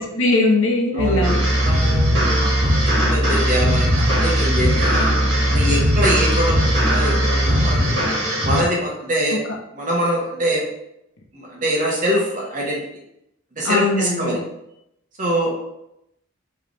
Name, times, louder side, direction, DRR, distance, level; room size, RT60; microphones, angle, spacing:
voice 1, 0.0-1.4 13.6-14.4, left 2 dB, 65° left, 1 dB, 0.8 m, -20 dB
voice 2, 0.9-5.1 5.5-8.0 8.4-9.4 9.7-10.7 11.3-12.8 13.6-14.4 15.2-15.5, equal, 35° right, -3 dB, 1.2 m, -24 dB
sound 1, 1.0-7.8, right 1 dB, 80° right, 0.7 m, -21 dB
sound 2, 1.2-8.6, equal, 55° right, 1.8 m, -21 dB
4.8 x 3.2 x 3.3 m, 0.81 s
head